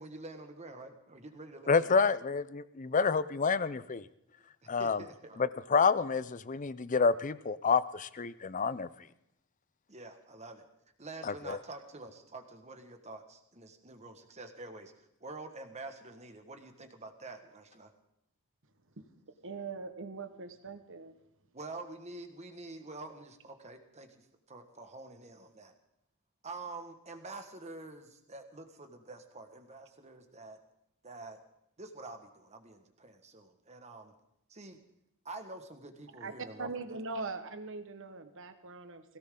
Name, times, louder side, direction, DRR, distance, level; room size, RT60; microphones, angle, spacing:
voice 1, 0.0-2.0 4.6-5.4 9.9-10.7 11.0-14.9 15.2-17.9 21.5-24.2 24.5-25.7 26.4-30.6 31.0-31.4 31.8-34.1 34.5-34.8 35.2-36.7, right 2 dB, 30° right, 6 dB, 1.6 m, -47 dB
voice 2, 1.7-4.1 4.7-5.0 5.4-8.9 11.2-11.6, left 5 dB, 35° left, 16 dB, 0.6 m, -28 dB
voice 3, 19.4-21.1 36.2-36.3 36.6-39.0, right 3 dB, 60° right, 9 dB, 1.4 m, -41 dB
21.0 x 17.0 x 3.8 m, 0.79 s
head